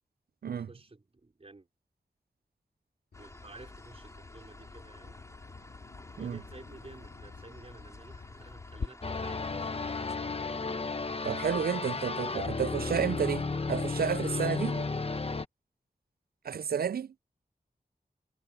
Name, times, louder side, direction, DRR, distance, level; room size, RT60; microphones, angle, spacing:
voice 1, 0.4-1.7 3.2-5.2 6.2-10.6 12.8-14.6 15.1-15.2, right 2 dB, 40° right, 5.0 m, -53 dB
Bird vocalization bird call bird song, 3.1-8.9, left 4 dB, 85° left, 2.0 m, -46 dB
sound 1, 3.1-10.2, left 1 dB, 20° left, 5.5 m, -53 dB
sound 2, 9.0-15.4, left 3 dB, 40° left, 1.0 m, -33 dB
voice 2, 11.2-14.8 16.4-17.1, right 7 dB, 70° right, 0.4 m, -31 dB
wide cardioid pair, 95°, 16 cm